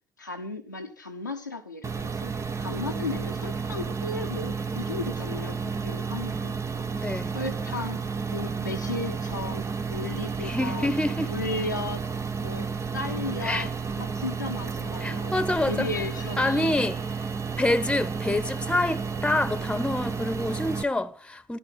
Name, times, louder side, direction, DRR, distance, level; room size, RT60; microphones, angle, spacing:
voice 1, 0.2-2.3 2.6-8.0 8.3-12.0 12.4-12.7 12.9-13.7 14.0-16.8, left 2 dB, 90° left, 1.0 m, -35 dB
sound 1, 1.8-20.8, right 5 dB, 30° right, 1.1 m, -32 dB
voice 2, 7.0-7.4 10.4-11.3 13.4-13.7 15.0-15.9 16.4-17.0 17.6-21.6, left 1 dB, 10° left, 1.2 m, -27 dB
14.0 x 12.5 x 5.8 m
figure-of-eight pair, 50°, 10 cm